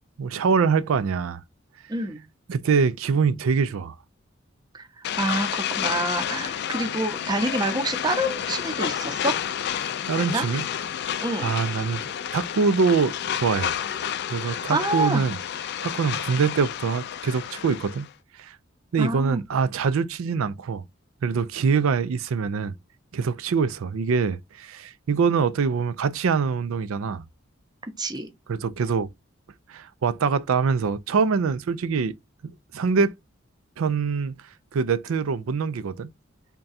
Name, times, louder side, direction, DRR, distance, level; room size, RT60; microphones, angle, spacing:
voice 1, 0.2-1.4 2.5-3.9 9.8-10.7 11.4-13.8 14.3-15.4 15.8-18.1 18.4-18.6 18.9-20.8 21.2-22.7 23.1-27.2 28.5-29.1 29.7-32.1 32.4-33.1 33.8-34.4 34.7-36.1, right 5 dB, 80° right, 0.4 m, -24 dB
voice 2, 1.9-2.2 4.7-9.3 10.2-10.5 11.2-11.5 14.5-15.3 19.0-19.4 27.8-28.3, right 1 dB, 20° right, 0.6 m, -27 dB
sound 1, 5.0-18.1, left 9 dB, 55° left, 0.3 m, -30 dB
3.6 x 2.2 x 4.1 m
head